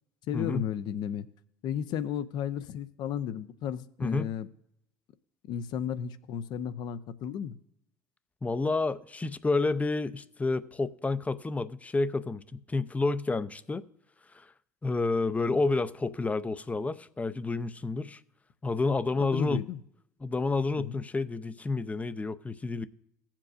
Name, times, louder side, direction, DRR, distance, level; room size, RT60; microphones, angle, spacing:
voice 1, 0.3-1.3 1.6-4.5 5.4-7.6 19.2-19.8 20.8-21.0, left 9 dB, 55° left, 0.7 m, -34 dB
voice 2, 8.4-13.8 14.3-14.5 14.8-18.2 18.6-19.6 20.2-22.9, left 3 dB, 15° left, 0.6 m, -29 dB
17.0 x 7.4 x 2.5 m
hypercardioid pair, 75°, 9 cm